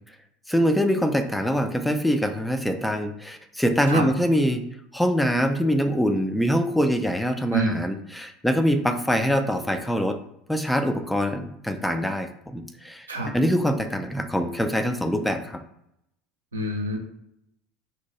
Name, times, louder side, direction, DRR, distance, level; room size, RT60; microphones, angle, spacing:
voice 1, 0.5-4.6 4.9-10.2 10.5-15.6, equal, 5° left, 6 dB, 0.3 m, -24 dB
voice 2, 16.5-17.0, right 1 dB, 85° right, 2 dB, 0.4 m, -26 dB
2.7 x 2.1 x 2.9 m, 0.77 s
figure-of-eight pair, 70°, 0 cm